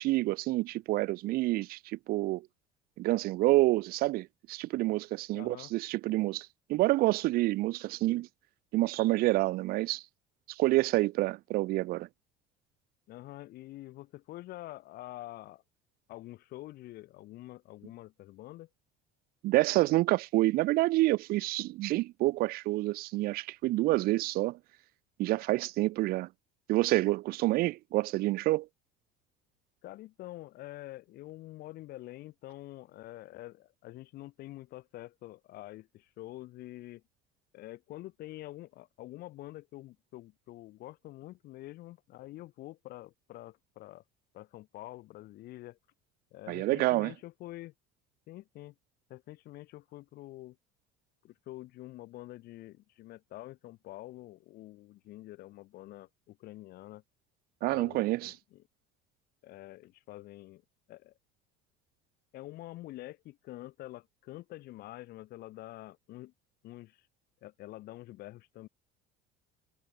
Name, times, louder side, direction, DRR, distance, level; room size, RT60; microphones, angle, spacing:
voice 1, 0.0-2.5 3.0-8.3 8.7-10.0 10.5-12.1 19.4-24.6 25.2-26.3 26.7-28.7 46.5-47.1 57.6-58.3, right 18 dB, 50° right, 0.6 m, -28 dB
voice 2, 5.3-5.7 13.1-15.6 16.1-18.7 29.8-37.0 37.5-44.0 44.3-45.8 46.3-47.7 48.3-48.7 49.1-50.6 51.2-57.0 57.7-58.6 59.4-60.6 60.9-61.1 62.3-66.3 66.6-67.0 67.4-68.7, left 16 dB, 50° left, 1.7 m, -47 dB
cardioid pair, 165°, 20 cm